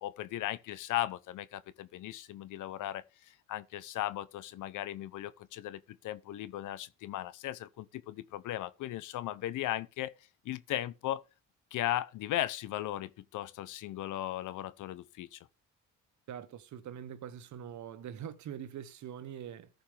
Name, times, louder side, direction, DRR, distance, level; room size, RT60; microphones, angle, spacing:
voice 1, 0.0-10.1 10.4-11.2 11.7-15.4, left 14 dB, 85° left, 0.9 m, -37 dB
voice 2, 16.3-19.7, right 9 dB, 70° right, 1.2 m, -43 dB
14.5 x 5.3 x 3.5 m
cardioid pair, 90°, 30 cm